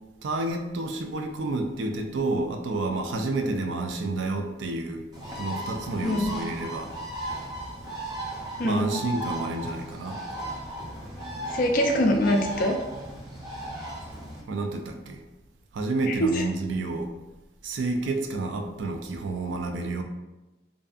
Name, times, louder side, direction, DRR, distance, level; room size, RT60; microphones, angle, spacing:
voice 1, 0.2-5.0 5.4-6.9 8.6-10.2 14.5-15.2 15.7-17.1 17.6-20.0, right 2 dB, 75° right, 4 dB, 0.3 m, -29 dB
Bird, 5.1-14.4, right 1 dB, 20° right, 0.5 m, -36 dB
voice 2, 6.0-6.3 8.6-8.9 11.5-12.8 16.1-16.4, equal, 45° left, 2 dB, 0.3 m, -23 dB
2.6 x 2.3 x 2.4 m, 1.1 s
head